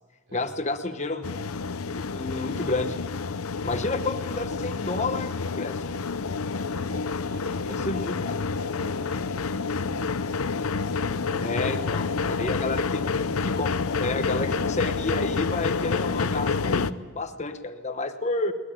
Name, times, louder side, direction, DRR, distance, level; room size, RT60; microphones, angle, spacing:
voice 1, 0.3-1.3 1.8-3.0 3.6-5.8 7.7-8.3 11.4-13.1 13.4-18.5, left 2 dB, 30° left, 8 dB, 1.0 m, -30 dB
sound 1, 1.2-16.9, left 4 dB, 80° left, 0.7 m, -28 dB
voice 2, 6.7-7.9 8.4-9.8 12.0-12.5, equal, 65° right, 2 dB, 4.7 m, -44 dB
21.5 x 19.5 x 9.0 m, 1.4 s
head